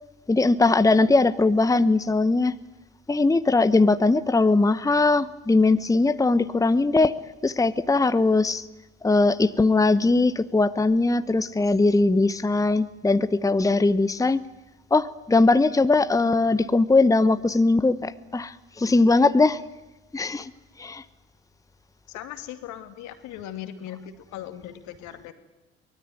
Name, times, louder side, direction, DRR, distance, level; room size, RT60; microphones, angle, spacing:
voice 1, 0.3-2.5 3.1-7.1 7.4-8.6 9.0-14.4 14.9-19.6 20.1-20.5 20.8-21.0, left 3 dB, 10° left, 14 dB, 1.0 m, -20 dB
voice 2, 22.1-25.3, left 11 dB, 65° left, 9 dB, 2.5 m, -38 dB
23.5 x 19.5 x 9.4 m, 1.0 s
hypercardioid pair, 60°, 31 cm